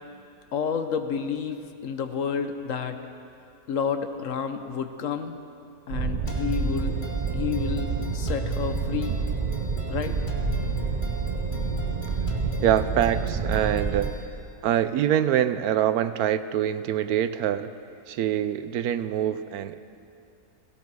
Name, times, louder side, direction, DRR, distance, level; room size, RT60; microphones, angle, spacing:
voice 1, 0.5-3.0 3.7-5.4 5.9-6.9 7.3-9.2 9.9-10.1, left 7 dB, 60° left, 8 dB, 1.1 m, -30 dB
sound 1, 5.9-14.1, right 5 dB, 50° right, 0.5 m, -28 dB
sound 2, 6.3-14.3, left 2 dB, 35° left, 1.5 m, -38 dB
voice 2, 12.6-14.1 14.6-17.7 18.1-19.8, right 10 dB, 75° right, 12 dB, 1.1 m, -24 dB
17.5 x 16.5 x 4.7 m, 2.5 s
omnidirectional pair, 1.6 m